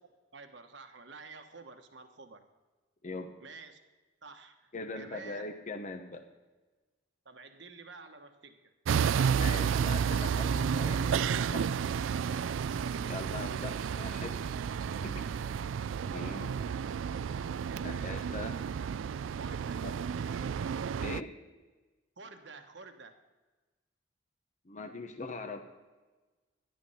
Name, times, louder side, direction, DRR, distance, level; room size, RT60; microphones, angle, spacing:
voice 1, 0.3-2.4 3.4-3.8 4.2-5.5 7.2-8.7 17.7-18.3 19.4-19.9 22.2-23.2, right 4 dB, 65° right, 6 dB, 1.2 m, -50 dB
voice 2, 4.7-6.2 9.2-11.7 13.0-14.4 15.0-15.5 16.1-16.5 17.8-18.5 19.8-19.9 21.0-21.3 24.6-25.6, left 3 dB, 40° left, 5 dB, 1.0 m, -41 dB
sound 1, 8.9-21.2, right 7 dB, 80° right, 0.3 m, -31 dB
13.0 x 11.0 x 5.6 m, 1.2 s
head